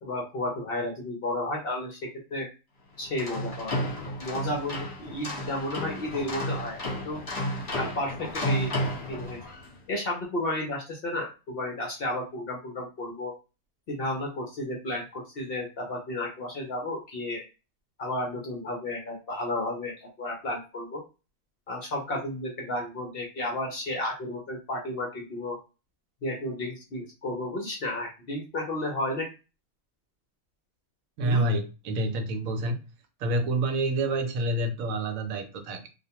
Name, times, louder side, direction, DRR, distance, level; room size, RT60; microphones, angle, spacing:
voice 1, 0.0-2.5 3.0-3.8 4.2-6.8 7.0-7.2 7.8-8.7 9.0-9.4 9.9-13.3 13.9-17.4 18.0-21.0 21.7-25.6 26.2-29.3 31.2-31.5, left 1 dB, 60° left, 0 dB, 0.7 m, -32 dB
sound 1, 3.0-9.7, equal, 40° left, 1.0 m, -32 dB
voice 2, 31.2-32.7 33.2-35.9, right 1 dB, 75° right, 6 dB, 1.0 m, -28 dB
2.4 x 2.1 x 2.8 m, 0.30 s
omnidirectional pair, 1.5 m